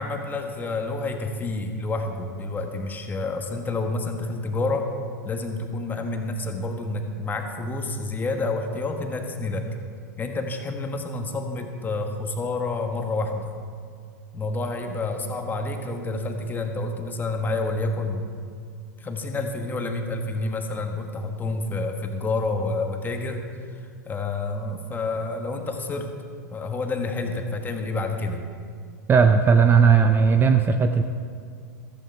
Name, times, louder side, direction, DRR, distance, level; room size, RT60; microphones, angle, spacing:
voice 1, 0.0-4.9 5.2-9.7 10.2-13.6 14.3-18.3 19.0-23.4 23.7-26.1 26.5-28.4, left 2 dB, 20° left, 4 dB, 1.5 m, -29 dB
voice 2, 29.1-31.0, right 6 dB, 20° right, 7 dB, 0.6 m, -17 dB
14.0 x 14.0 x 3.4 m, 2.1 s
hypercardioid pair, 100°, 10 cm